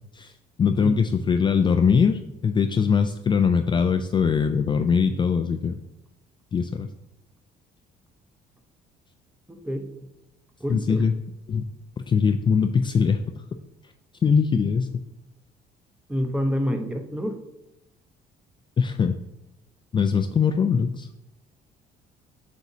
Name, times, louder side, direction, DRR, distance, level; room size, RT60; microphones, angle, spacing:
voice 1, 0.6-5.7 6.5-6.9 10.7-11.1 11.5-11.6 12.1-13.2 14.2-15.0 18.8-19.2 19.9-21.1, left 6 dB, 30° left, 6 dB, 0.3 m, -21 dB
voice 2, 9.5-9.9 10.6-11.1 16.1-17.4, equal, 5° right, 5 dB, 0.8 m, -27 dB
7.9 x 6.1 x 2.8 m, 0.91 s
cardioid pair, 110°, 17 cm